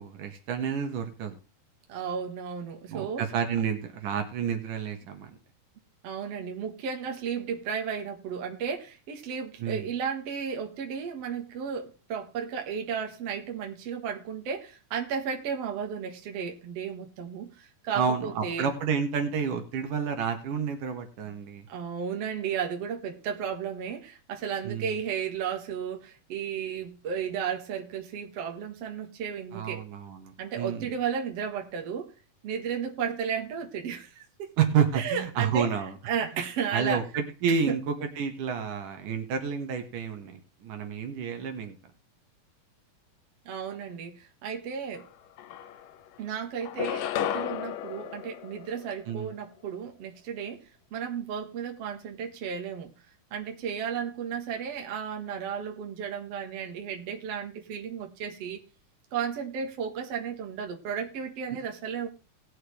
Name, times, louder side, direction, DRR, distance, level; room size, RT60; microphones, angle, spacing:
voice 1, 0.0-1.3 2.9-5.4 9.6-9.9 17.9-21.7 24.7-24.9 29.5-30.9 34.6-36.0 36.7-41.8 49.1-49.3, right 7 dB, 75° right, 2.9 m, -30 dB
voice 2, 1.9-3.3 6.0-18.7 21.7-29.8 30.4-32.1 32.4-34.5 34.9-35.7 36.1-37.0 37.5-37.8 43.5-45.1 46.2-52.9 53.3-58.6 59.1-62.1, right 7 dB, 55° right, 2.4 m, -34 dB
sound 1, 45.0-45.1 45.4-46.2 46.6-49.2, left 10 dB, 80° left, 2.3 m, -34 dB
19.0 x 6.6 x 3.2 m
omnidirectional pair, 3.8 m